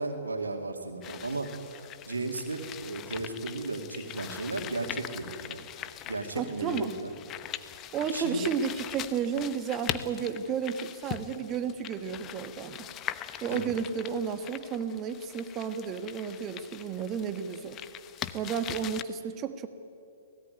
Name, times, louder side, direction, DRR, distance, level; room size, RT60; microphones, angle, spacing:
voice 1, 0.0-1.5 1.8-7.1 8.1-8.5 13.5-13.7, right 3 dB, 85° right, 3 dB, 2.5 m, -35 dB
sound 1, 1.0-19.0, left 11 dB, 25° left, 0.9 m, -41 dB
voice 2, 6.3-6.9 7.9-12.9 13.4-17.8 18.3-19.7, right 7 dB, 25° right, 9 dB, 1.4 m, -32 dB
23.5 x 17.5 x 9.6 m, 2.5 s
figure-of-eight pair, 120°, 0 cm